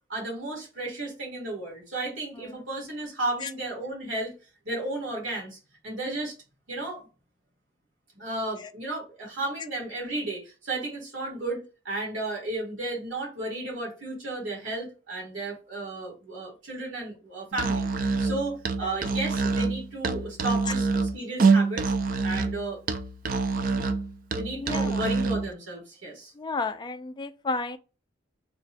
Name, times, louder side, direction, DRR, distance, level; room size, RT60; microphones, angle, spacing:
voice 1, 0.1-4.3 4.7-5.6 5.8-6.3 6.7-7.1 8.2-21.9 22.2-22.8 24.3-26.3, right 2 dB, 75° right, 1.8 m, -33 dB
Musical instrument, 17.5-25.5, right 4 dB, 45° right, 0.4 m, -26 dB
voice 2, 24.6-25.0 26.4-27.8, left 3 dB, 20° left, 0.3 m, -32 dB
3.5 x 2.2 x 4.1 m
head